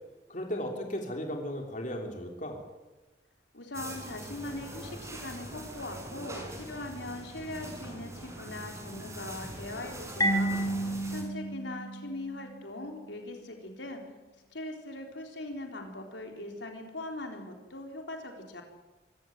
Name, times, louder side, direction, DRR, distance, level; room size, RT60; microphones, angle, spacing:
voice 1, 0.3-2.6, equal, 45° left, 2 dB, 3.2 m, -35 dB
voice 2, 3.5-14.0 14.5-18.6, left 2 dB, 90° left, 3 dB, 3.9 m, -41 dB
sound 1, 3.7-11.2, right 1 dB, 15° right, 5.5 m, -43 dB
Marimba xylophone, 10.2-12.8, right 1 dB, 20° left, 4.0 m, -31 dB
24.5 x 14.5 x 9.2 m, 1.2 s
head